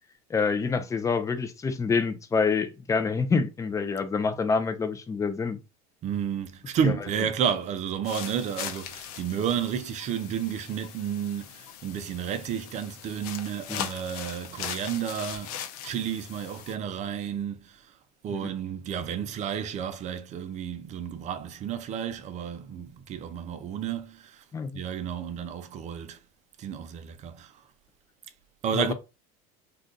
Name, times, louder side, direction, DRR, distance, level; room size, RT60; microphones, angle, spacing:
voice 1, 0.3-5.6 6.8-6.9 13.7-13.9 18.3-18.5 24.5-24.7 28.7-28.9, left 5 dB, 15° left, 0.5 m, -27 dB
voice 2, 6.0-15.5 15.8-17.8 18.2-24.4 24.7-26.2 26.6-27.6 28.6-28.9, right 8 dB, 35° right, 0.5 m, -31 dB
sound 1, 8.0-16.8, left 9 dB, 75° left, 0.6 m, -40 dB
2.6 x 2.3 x 3.7 m
supercardioid pair, 105°, 20 cm